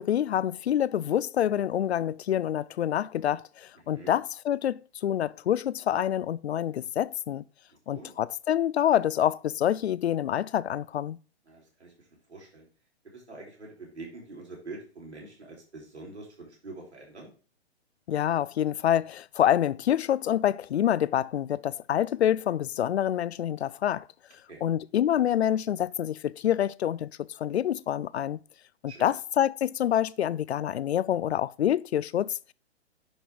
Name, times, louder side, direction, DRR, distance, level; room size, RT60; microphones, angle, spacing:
voice 1, 0.0-7.4 7.9-11.2 18.1-24.1 24.6-28.4 29.0-32.5, left 10 dB, 75° left, 0.5 m, -27 dB
voice 2, 7.7-8.1 11.5-12.7 13.0-17.3 24.5-24.6 28.9-29.1, right 3 dB, 85° right, 4.0 m, -45 dB
10.5 x 3.8 x 4.6 m
figure-of-eight pair, 125°, 33 cm